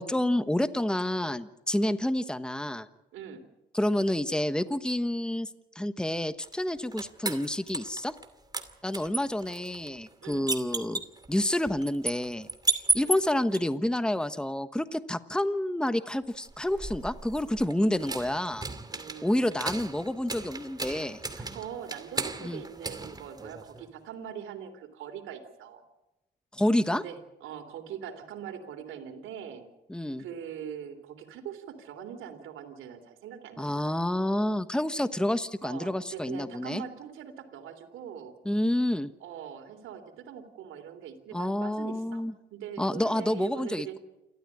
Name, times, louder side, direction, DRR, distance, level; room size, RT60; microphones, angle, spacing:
voice 1, 0.0-2.9 3.7-5.5 5.7-8.1 8.8-11.0 11.3-12.5 12.7-18.6 19.2-21.2 22.4-22.6 26.5-27.0 29.9-30.2 33.6-36.8 38.4-39.1 41.3-42.3 42.8-44.0, left 1 dB, 5° left, 12 dB, 1.2 m, -29 dB
voice 2, 3.1-3.5 10.2-10.5 12.9-13.1 18.9-19.8 21.3-25.8 26.9-29.7 30.2-33.9 35.6-38.3 39.2-42.2 42.5-44.0, right 8 dB, 85° right, 7 dB, 3.4 m, -42 dB
sound 1, 6.4-8.3 8.5-13.6 16.4-23.9, right 2 dB, 20° right, 2.4 m, -35 dB
28.5 x 13.5 x 9.9 m, 0.97 s
cardioid pair, 90°, 20 cm